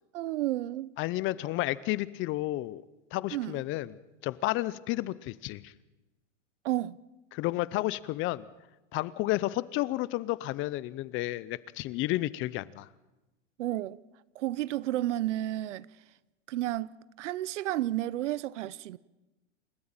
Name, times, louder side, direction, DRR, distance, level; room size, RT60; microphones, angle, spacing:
voice 1, 0.1-0.9 3.3-3.6 6.6-7.0 13.6-14.0 14.3-15.9 16.5-19.0, right 14 dB, 75° right, 0.9 m, -32 dB
voice 2, 1.0-2.8 3.1-5.7 7.3-8.5 8.9-12.9, left 17 dB, 35° left, 0.7 m, -31 dB
29.0 x 13.5 x 8.9 m
hypercardioid pair, 130°, 37 cm